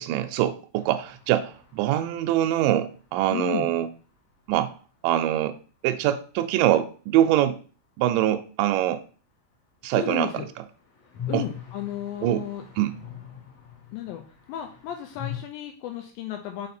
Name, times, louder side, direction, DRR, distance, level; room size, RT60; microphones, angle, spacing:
voice 1, 0.0-3.9 4.5-4.7 5.0-5.6 5.8-7.6 8.0-9.0 9.8-10.3 11.3-11.4 12.2-12.4 12.8-13.0, right 12 dB, 80° right, 8 dB, 2.0 m, -24 dB
sound 1, 0.7-4.5 4.8-4.9 5.1-5.2 10.2-15.4, left 9 dB, 55° left, 2.1 m, -42 dB
voice 2, 3.3-3.7 9.9-10.5 11.3-12.6 13.9-14.2 14.5-16.7, left 11 dB, 80° left, 4 dB, 2.3 m, -33 dB
5.6 x 4.0 x 4.3 m, 0.39 s
omnidirectional pair, 4.3 m